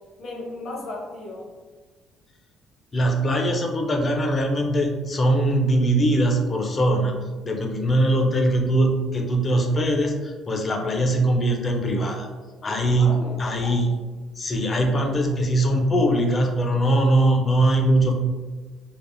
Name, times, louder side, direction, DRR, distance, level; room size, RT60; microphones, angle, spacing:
voice 1, 0.2-1.5 12.6-13.5, left 2 dB, 65° left, -1 dB, 0.8 m, -36 dB
voice 2, 2.9-7.2 7.4-12.3 12.6-14.0 14.4-18.1, right 1 dB, 30° left, 2 dB, 0.5 m, -21 dB
3.3 x 2.0 x 2.5 m, 1.3 s
cardioid pair, 110°, 0 cm